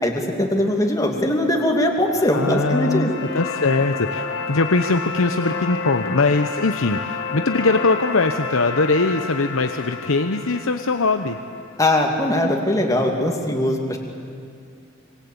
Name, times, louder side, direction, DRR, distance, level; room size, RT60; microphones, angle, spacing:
voice 1, 0.0-3.1 11.8-14.0, left 1 dB, 15° left, 1 dB, 2.7 m, -20 dB
Whisper Too Quiet, 2.0-12.1, left 4 dB, 75° left, 2.3 m, -31 dB
voice 2, 2.3-11.4, left 3 dB, 90° left, 7 dB, 1.0 m, -21 dB
26.0 x 25.0 x 8.7 m, 2.3 s
head